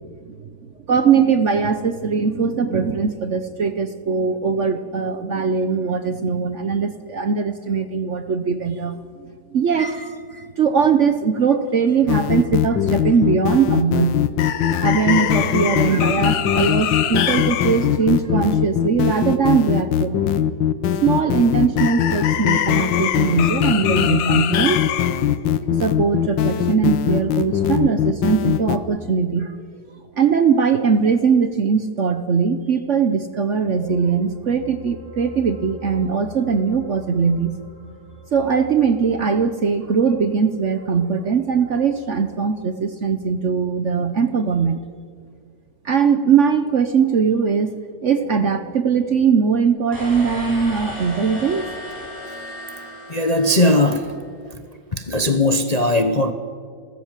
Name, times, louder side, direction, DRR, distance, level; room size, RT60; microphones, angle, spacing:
voice 1, 0.9-14.2 14.8-20.5 21.0-24.8 25.2-25.3 25.8-29.5 30.2-37.6 38.3-44.8 45.8-47.7 48.0-51.7, right 6 dB, 50° right, 10 dB, 1.0 m, -20 dB
sound 1, 12.1-28.8, left 9 dB, 90° left, 1.6 m, -20 dB
sound 2, 33.5-44.1 44.4-44.6, left 2 dB, 35° right, 8.1 m, -44 dB
sound 3, 49.9-54.1, equal, 10° right, 6.7 m, -34 dB
voice 2, 53.1-54.1 54.9-56.3, left 1 dB, 30° left, 8 dB, 0.7 m, -18 dB
29.5 x 14.0 x 7.4 m, 2.1 s
omnidirectional pair, 2.0 m